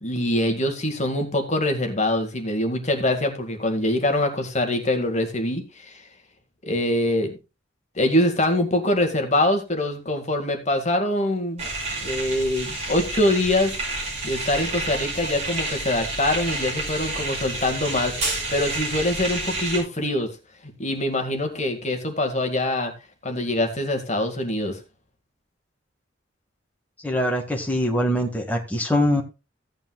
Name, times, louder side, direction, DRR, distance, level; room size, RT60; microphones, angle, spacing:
voice 1, 0.0-6.0 6.6-7.3 8.0-11.7 12.0-13.8 14.2-20.3 20.8-22.9 23.2-24.8, left 1 dB, 35° left, 5 dB, 1.9 m, -24 dB
sound 1, 11.6-19.8, right 2 dB, 35° right, 5.6 m, -29 dB
voice 2, 27.0-29.2, equal, 10° left, 1 dB, 1.8 m, -23 dB
16.0 x 8.9 x 2.4 m, 0.28 s
head